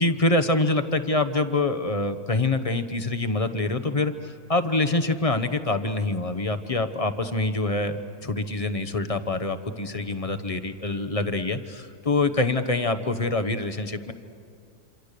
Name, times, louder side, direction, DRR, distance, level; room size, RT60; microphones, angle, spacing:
voice 1, 0.0-14.1, left 2 dB, 30° left, 8 dB, 0.8 m, -25 dB
27.0 x 26.5 x 6.7 m, 2.4 s
omnidirectional pair, 1.6 m